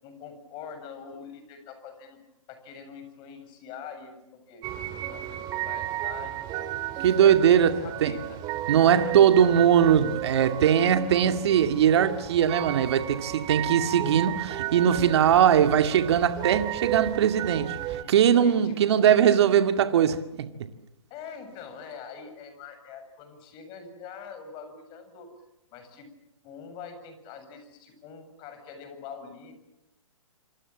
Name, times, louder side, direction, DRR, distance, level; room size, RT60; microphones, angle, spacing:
voice 1, 0.0-2.2 2.5-8.4 8.9-9.2 17.9-19.2 21.1-25.3 25.7-26.1 26.4-29.5, left 6 dB, 30° left, 7.5 m, -44 dB
sound 1, 4.6-18.0, right 12 dB, 25° right, 2.2 m, -34 dB
voice 2, 7.0-8.1 8.7-17.8 18.1-20.5, right 9 dB, 50° right, 2.2 m, -21 dB
27.0 x 26.5 x 7.5 m
hypercardioid pair, 140°, 17 cm